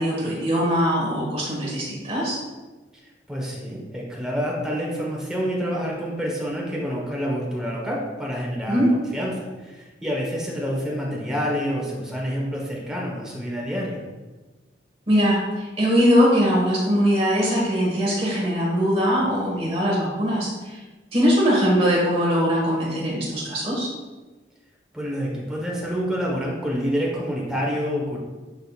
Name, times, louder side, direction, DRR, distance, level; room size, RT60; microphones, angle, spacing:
voice 1, 0.0-2.4 8.7-8.9 15.1-20.8 21.1-23.9, equal, 30° right, -5 dB, 1.5 m, -21 dB
voice 2, 3.3-14.0 24.9-28.2, equal, 5° right, -3 dB, 1.1 m, -28 dB
10.5 x 3.9 x 2.4 m, 1.2 s
head